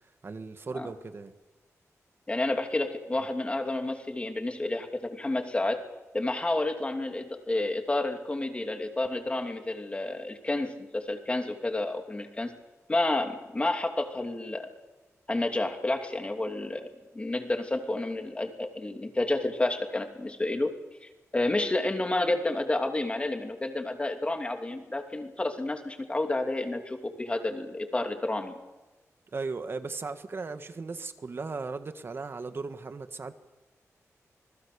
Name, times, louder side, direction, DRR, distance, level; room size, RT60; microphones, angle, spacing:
voice 1, 0.2-1.3 29.3-33.3, right 4 dB, 45° right, 1.6 m, -37 dB
voice 2, 2.3-5.8 6.1-12.5 12.9-14.7 15.3-20.7 21.0-28.6, left 2 dB, 20° left, 2.8 m, -30 dB
27.0 x 20.0 x 6.9 m
wide cardioid pair, 140°, 6 cm